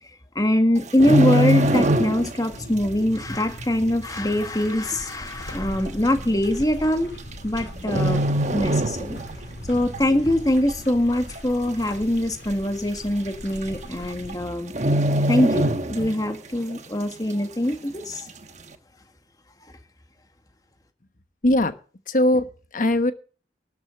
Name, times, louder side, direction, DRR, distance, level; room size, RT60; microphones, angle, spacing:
voice 1, 0.4-7.1 7.4-9.2 9.6-14.7 15.3-18.3, left 1 dB, 20° left, 6 dB, 1.6 m, -23 dB
sound 1, 0.8-2.5 2.8-3.1 3.6-3.7 4.6-4.7 4.9-5.0 5.9-6.1 7.2-7.6 7.9-9.4 9.8-10.0 10.5-11.0 11.4-11.5 11.7-11.8 12.2-12.3 13.3-13.4 13.6-13.9 14.2-14.3 14.7-16.4 16.7-16.8, right 1 dB, 40° right, 1.1 m, -22 dB
sound 2, 2.5-14.4, left 1 dB, 65° left, 3.0 m, -40 dB
voice 2, 21.4-21.7 22.1-23.1, left 1 dB, 50° left, 10 dB, 1.2 m, -20 dB
12.5 x 7.1 x 8.5 m, 0.39 s
head